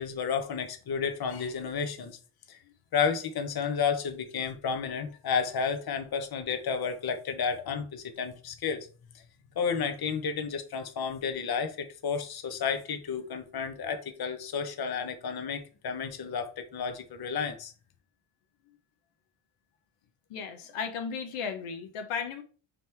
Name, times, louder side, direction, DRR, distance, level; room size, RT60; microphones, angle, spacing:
voice 1, 0.0-2.2 2.5-2.6 2.9-8.9 9.6-17.7, left 6 dB, 45° left, 0.8 m, -31 dB
voice 2, 20.3-22.4, left 6 dB, 85° left, 0.9 m, -35 dB
5.1 x 3.0 x 3.3 m
cardioid pair, 80°, 50 cm